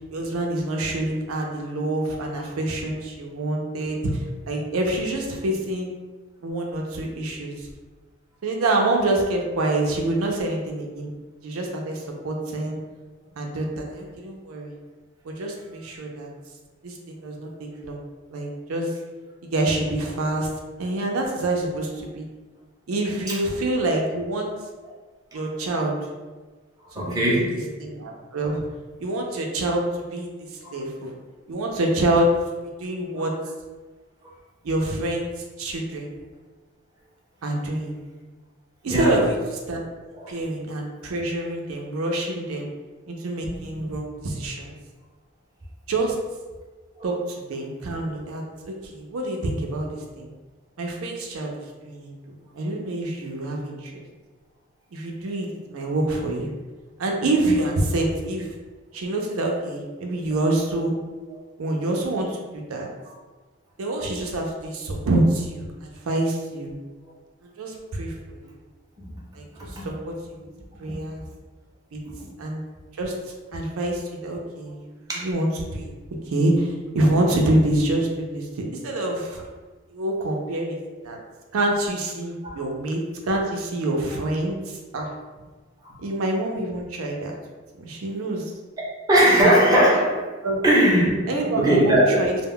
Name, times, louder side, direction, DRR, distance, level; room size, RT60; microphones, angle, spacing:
voice 1, 0.0-5.9 6.4-7.7 8.4-11.1 11.4-12.8 13.4-14.7 15.2-16.3 16.8-18.0 18.3-18.9 19.5-20.5 20.8-22.3 22.9-24.5 25.3-25.9 26.9-27.5 27.8-28.6 29.0-29.8 30.1-31.1 31.5-32.3 32.8-33.3 34.6-35.3 35.6-36.1 37.4-38.0 38.8-39.4 39.7-39.9 40.3-42.7 43.1-44.8 45.9-46.2 47.0-50.3 50.8-54.0 54.9-56.5 57.0-58.5 58.9-60.9 61.6-62.9 63.8-66.7 67.4-68.4 69.3-70.5 70.8-71.2 71.9-72.0 72.4-72.6 73.0-73.1 73.5-75.9 76.3-79.4 79.9-81.2 81.5-85.1 86.0-87.3 87.7-88.5 90.4-90.6 91.3-92.4, right 1 dB, 90° right, 1 dB, 0.5 m, -26 dB
voice 2, 27.0-27.7 30.6-30.8 33.1-33.2 38.9-39.2 40.1-40.4 43.7-43.8 47.0-47.1 61.3-61.4 69.0-69.1 69.6-69.8 70.9-71.0 75.1-75.2 82.4-82.5 85.8-86.0 89.1-90.3 90.6-91.2 91.5-92.2, right 1 dB, 20° right, -6 dB, 0.6 m, -20 dB
2.1 x 2.1 x 3.6 m, 1.3 s
head